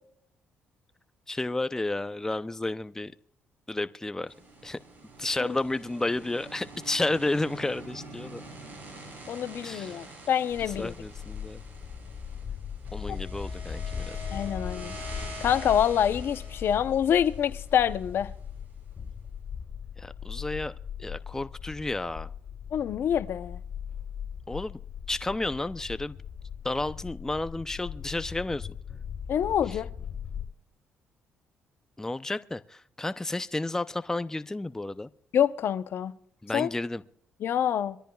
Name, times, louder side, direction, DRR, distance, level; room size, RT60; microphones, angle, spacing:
voice 1, 1.3-3.1 3.7-4.3 4.6-4.8 5.2-8.4 9.6-10.1 10.6-11.6 12.9-14.2 20.0-20.7 21.0-22.3 24.5-24.8 25.1-26.2 26.6-28.7 29.7-29.8 32.0-35.1 36.4-37.0, left 2 dB, 10° left, 0.6 m, -32 dB
sound 1, 4.3-18.5, right 1 dB, 45° right, 7.0 m, -45 dB
voice 2, 9.3-10.9 14.3-18.3 22.7-23.6 29.3-29.9 35.3-36.1 36.5-36.7 37.4-38.0, left 9 dB, 65° left, 0.8 m, -26 dB
sound 2, 10.5-30.4, left 7 dB, 40° left, 5.5 m, -39 dB
24.0 x 13.5 x 2.3 m
cardioid pair, 80°, 4 cm